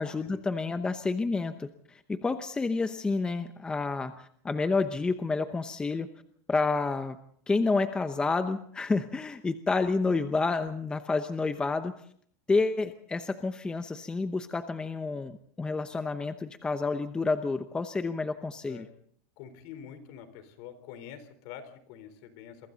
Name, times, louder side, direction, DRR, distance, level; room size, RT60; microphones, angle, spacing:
voice 1, 0.0-6.1 6.5-7.2 7.5-11.9 12.5-18.9, left 3 dB, 10° left, 9 dB, 0.8 m, -29 dB
voice 2, 19.4-22.7, left 9 dB, 55° left, 10 dB, 4.0 m, -46 dB
28.0 x 24.0 x 4.1 m, 0.63 s
supercardioid pair, 160°, 9 cm